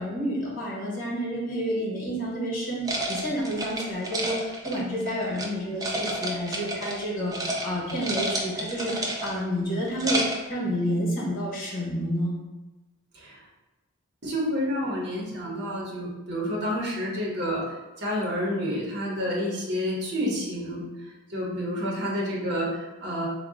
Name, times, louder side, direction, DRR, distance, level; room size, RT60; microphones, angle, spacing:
voice 1, 0.0-12.3, equal, 40° left, -5 dB, 1.2 m, -29 dB
sound 1, 2.8-5.5 5.8-7.0 7.3-7.6 7.9-9.5 9.8-10.5, right 1 dB, 15° right, 0.3 m, -30 dB
voice 2, 14.2-17.6 18.0-20.8 21.3-23.3, equal, 50° right, -4 dB, 0.9 m, -29 dB
3.7 x 2.3 x 3.6 m, 1.1 s
head